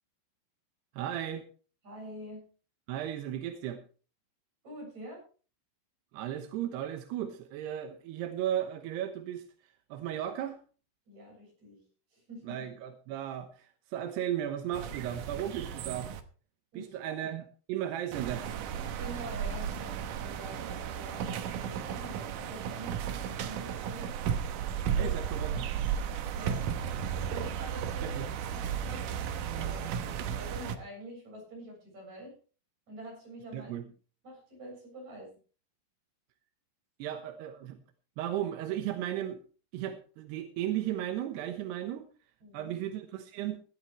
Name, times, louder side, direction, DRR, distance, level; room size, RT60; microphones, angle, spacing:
voice 1, 0.9-1.5 2.9-3.8 6.1-9.4 9.9-10.6 12.4-16.1 16.8-17.4 17.7-18.5 25.0-25.7 28.0-28.3 33.5-33.8 37.0-37.8 38.2-39.4 39.7-42.1 42.5-43.6, right 11 dB, 90° right, 7 dB, 3.2 m, -35 dB
voice 2, 1.8-2.4 4.6-5.2 11.1-11.8 12.1-12.7 16.7-17.2 18.9-24.1 24.8-25.2 25.5-25.7 26.4-26.6 27.3-32.3 32.9-33.8 34.2-35.3 42.4-42.8, right 1 dB, 45° right, -1 dB, 9.0 m, -46 dB
sound 1, 14.7-16.2 18.1-30.8, right 8 dB, 70° right, 2.3 m, -34 dB
18.0 x 12.0 x 3.3 m, 0.38 s
omnidirectional pair, 4.6 m